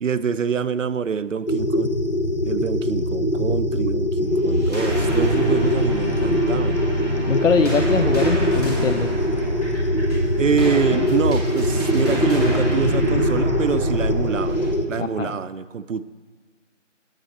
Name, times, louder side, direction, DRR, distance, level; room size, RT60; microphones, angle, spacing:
voice 1, 0.0-2.0 2.4-6.8 10.4-14.6 14.9-16.1, right 6 dB, 85° right, 14 dB, 0.5 m, -25 dB
sound 1, 1.5-14.9, equal, 50° left, 0.8 m, -23 dB
sound 2, 4.5-14.7, equal, 30° left, 2.4 m, -26 dB
voice 2, 7.3-9.1 15.0-15.3, left 5 dB, 80° left, 7 dB, 0.6 m, -22 dB
8.0 x 7.7 x 4.1 m, 1.4 s
figure-of-eight pair, 180°, 37 cm